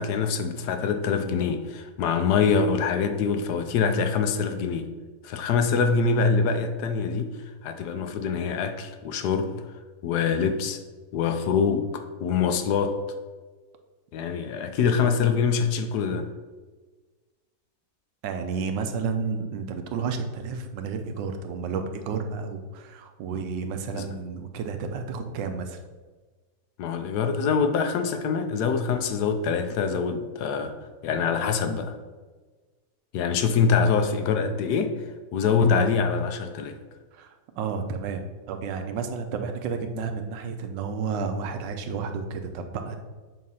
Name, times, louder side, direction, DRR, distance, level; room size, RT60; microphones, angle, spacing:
voice 1, 0.0-4.9 5.2-9.6 10.0-10.8 11.1-12.9 14.1-16.3 23.9-24.1 26.8-30.7 31.0-31.9 33.1-35.0 35.3-36.8, left 5 dB, 75° left, 7 dB, 1.1 m, -24 dB
voice 2, 18.2-25.8 37.1-43.0, right 5 dB, 90° right, 6 dB, 1.4 m, -31 dB
7.5 x 2.8 x 5.4 m, 1.3 s
omnidirectional pair, 1.9 m